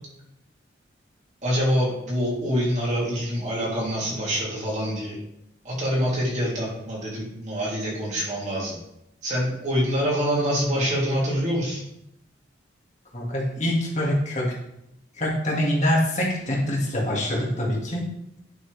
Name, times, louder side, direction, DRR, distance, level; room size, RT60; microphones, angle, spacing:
voice 1, 1.4-5.1 5.6-8.8 9.2-11.8, equal, 35° right, -5 dB, 2.9 m, -25 dB
voice 2, 13.1-14.5 15.2-18.0, left 1 dB, 40° left, -3 dB, 1.9 m, -24 dB
10.5 x 6.0 x 3.3 m, 0.81 s
head